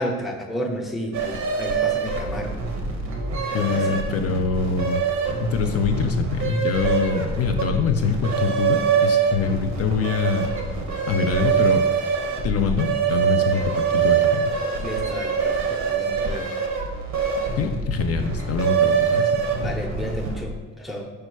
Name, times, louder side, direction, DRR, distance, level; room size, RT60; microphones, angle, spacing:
voice 1, 0.0-2.6 3.4-4.1 14.8-16.5 19.3-21.1, equal, ahead, 1 dB, 0.5 m, -32 dB
sound 1, 1.1-20.6, right 6 dB, 65° right, 0.8 m, -24 dB
voice 2, 3.5-5.0 5.4-10.5 11.1-11.9 12.4-14.5 17.6-19.4, left 6 dB, 55° left, 5 dB, 0.4 m, -24 dB
4.8 x 2.2 x 4.6 m, 1.3 s
cardioid pair, 90°, 30 cm